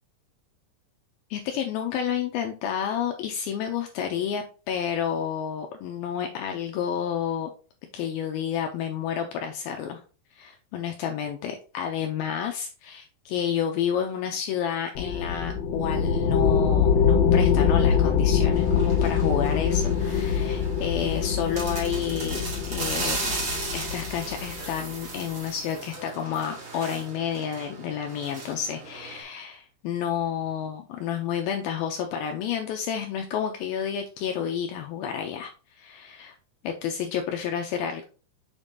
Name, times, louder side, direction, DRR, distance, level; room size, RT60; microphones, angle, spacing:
voice 1, 1.3-7.5 7.9-10.0 10.3-22.4 22.7-23.2 23.7-35.5 35.8-36.4 36.6-38.0, left 8 dB, 85° left, 4 dB, 2.2 m, -30 dB
sound 1, 15.0-25.0, left 6 dB, 65° left, 2.5 m, -24 dB
sound 2, 18.5-29.2, right 3 dB, 40° right, 2.9 m, -36 dB
7.2 x 5.2 x 2.7 m, 0.36 s
omnidirectional pair, 4.8 m